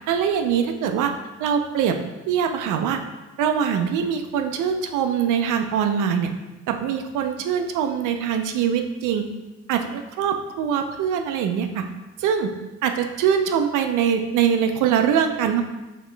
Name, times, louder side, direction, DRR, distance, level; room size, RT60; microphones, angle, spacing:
voice 1, 0.1-1.1 1.4-2.0 2.3-3.0 3.4-6.3 6.7-9.3 9.7-11.8 12.2-12.5 12.8-15.6, right 8 dB, 85° right, 6 dB, 0.5 m, -23 dB
4.1 x 3.0 x 3.2 m, 1.1 s
cardioid pair, 90°, 30 cm